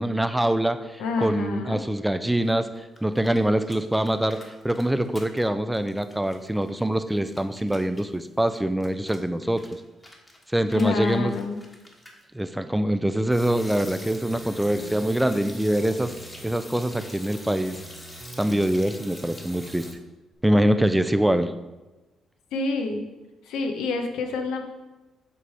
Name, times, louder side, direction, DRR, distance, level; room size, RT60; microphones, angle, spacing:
voice 1, 0.0-2.7 3.0-9.7 10.5-11.3 12.3-16.1 16.4-17.8 18.4-19.9 20.4-21.5, right 1 dB, 5° right, 10 dB, 0.4 m, -24 dB
voice 2, 1.0-1.8 10.7-11.6 22.5-23.1 23.4-24.6, left 4 dB, 85° left, 4 dB, 0.9 m, -27 dB
sound 1, 2.4-2.5 2.7-5.5 5.7-12.2 13.3-19.9, left 1 dB, 20° left, 1.3 m, -45 dB
sound 2, 13.5-16.5 16.9-19.9 20.3-20.4, right 3 dB, 40° right, 0.7 m, -44 dB
7.6 x 3.3 x 5.6 m, 1.1 s
cardioid pair, 90°, 0 cm